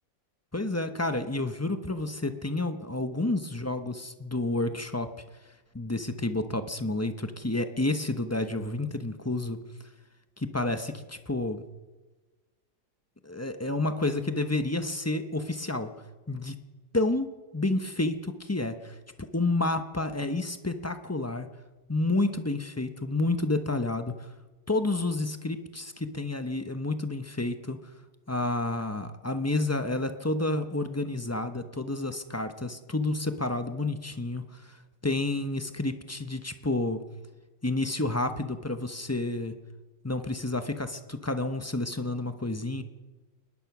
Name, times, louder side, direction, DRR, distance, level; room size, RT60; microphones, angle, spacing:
voice 1, 0.5-5.1 5.7-9.6 10.4-11.6 13.2-15.9 16.3-16.6 16.9-17.3 17.5-21.5 21.9-24.1 24.7-27.9 28.3-34.8 35.0-37.0 37.6-39.6 40.0-42.8, left 2 dB, 15° left, 8 dB, 0.5 m, -30 dB
22.0 x 20.0 x 6.1 m, 1.3 s
omnidirectional pair, 2.0 m